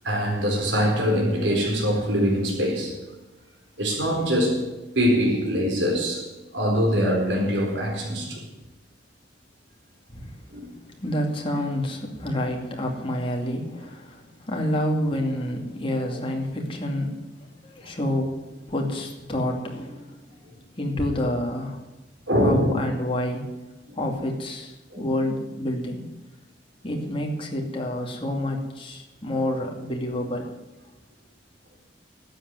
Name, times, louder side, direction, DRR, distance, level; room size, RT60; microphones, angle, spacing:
voice 1, 0.0-3.0 3.8-8.5 10.5-10.7 16.1-16.2 22.3-22.8 23.9-24.0 24.9-25.0, equal, 85° right, 4.2 m, -23 dB
voice 2, 11.0-20.2 20.8-21.8 22.4-23.5 24.0-26.0 26.8-30.5, left 1 dB, 30° left, 2.4 m, -28 dB
12.5 x 7.9 x 9.5 m
head